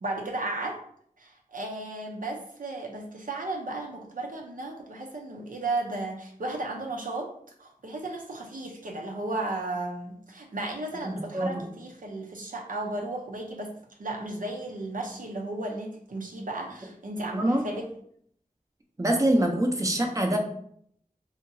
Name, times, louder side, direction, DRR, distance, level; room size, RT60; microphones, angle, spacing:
voice 1, 0.0-0.8 1.2-7.3 7.6-13.7 14.0-17.9, right 2 dB, 70° right, 0 dB, 0.5 m, -34 dB
voice 2, 11.0-11.6 17.2-17.6 19.0-20.4, right 1 dB, 20° right, 2 dB, 0.5 m, -25 dB
2.8 x 2.8 x 2.6 m, 0.65 s
wide cardioid pair, 45°, 15 cm